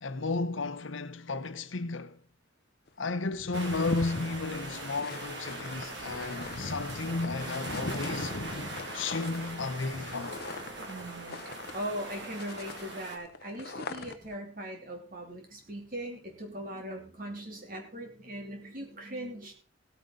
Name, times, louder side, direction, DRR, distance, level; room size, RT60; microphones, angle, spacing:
voice 1, 0.0-2.2 3.0-8.4 8.9-10.3, left 3 dB, 85° left, 0.9 m, -33 dB
sound 1, 2.9-3.0 3.2-12.1 12.4-14.4, left 2 dB, 55° left, 0.8 m, -41 dB
sound 2, 3.5-13.2, right 2 dB, 65° right, 2.1 m, -41 dB
voice 2, 10.9-19.5, right 1 dB, 45° right, 2.8 m, -40 dB
16.0 x 9.3 x 3.8 m
head